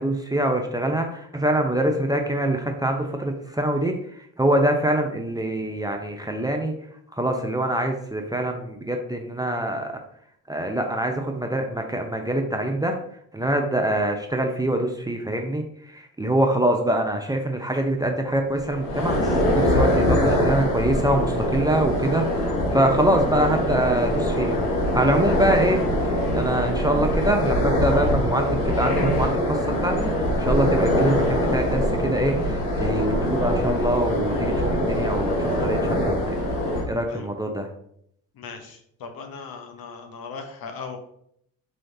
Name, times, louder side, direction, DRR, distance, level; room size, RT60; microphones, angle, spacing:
voice 1, 0.0-4.0 4.4-6.7 7.2-9.9 10.5-13.0 13.3-22.3 22.7-24.6 24.9-30.1 30.4-36.2 36.9-37.7, right 1 dB, 10° right, 3 dB, 0.6 m, -24 dB
sound 1, 18.6-36.8, left 1 dB, 85° left, 1.1 m, -23 dB
voice 2, 38.3-41.0, left 5 dB, 60° left, 5 dB, 0.9 m, -38 dB
4.7 x 3.2 x 2.7 m, 0.70 s
hypercardioid pair, 50°, 42 cm